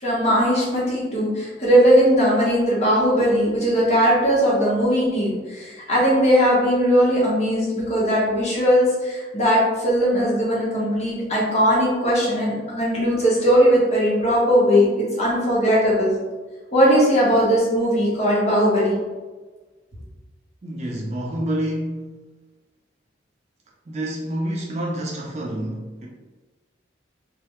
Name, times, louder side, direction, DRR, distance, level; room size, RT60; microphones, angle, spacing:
voice 1, 0.0-14.9 15.2-16.1 16.7-18.9, equal, 35° left, -6 dB, 0.8 m, -19 dB
voice 2, 20.6-22.1 23.9-26.1, right 1 dB, 35° right, -2 dB, 0.4 m, -28 dB
2.2 x 2.1 x 2.8 m, 1.3 s
head